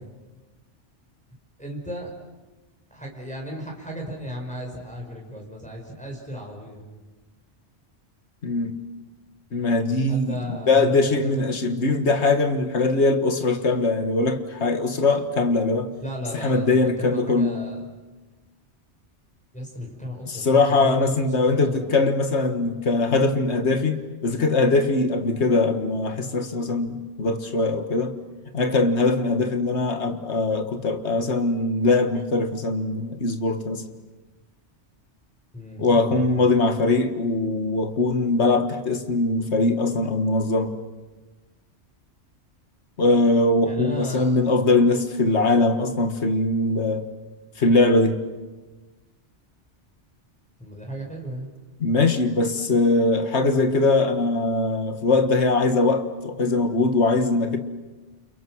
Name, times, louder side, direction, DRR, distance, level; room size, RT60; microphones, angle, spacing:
voice 1, 1.6-2.1 2.9-6.8 10.1-11.2 16.0-17.8 19.5-21.8 35.5-36.3 43.6-44.4 50.6-51.5, equal, 5° left, 5.6 m, -35 dB
voice 2, 8.4-8.8 9.5-15.9 16.3-17.6 20.3-28.1 28.5-33.8 35.8-40.8 43.0-47.1 47.6-48.2 51.8-57.6, left 3 dB, 70° left, 2.0 m, -21 dB
30.0 x 29.0 x 6.4 m
omnidirectional pair, 1.2 m